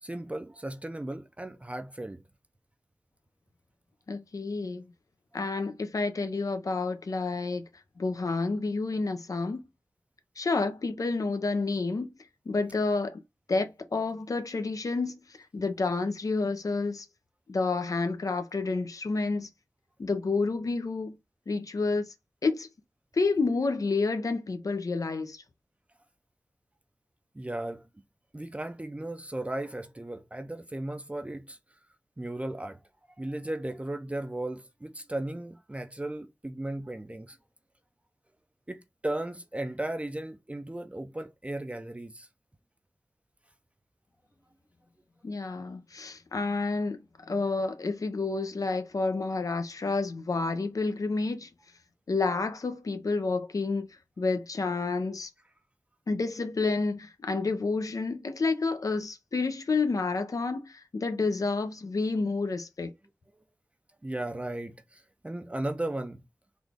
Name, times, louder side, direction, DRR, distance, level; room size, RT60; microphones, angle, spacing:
voice 1, 0.0-2.2 5.5-5.7 27.3-27.9 28.3-31.6 32.2-32.8 33.2-37.4 38.7-42.3 64.0-66.2, right 1 dB, 20° right, 0.5 m, -36 dB
voice 2, 4.1-4.9 5.3-7.6 8.0-9.7 10.4-12.1 12.5-13.2 13.5-15.2 15.5-17.1 17.5-19.5 20.0-21.1 21.5-22.1 22.4-22.7 23.1-25.4 45.2-47.0 47.3-51.5 52.1-53.9 54.2-55.3 56.1-62.9, left 3 dB, 70° left, 0.7 m, -29 dB
3.9 x 2.4 x 3.4 m
cardioid pair, 45°, 6 cm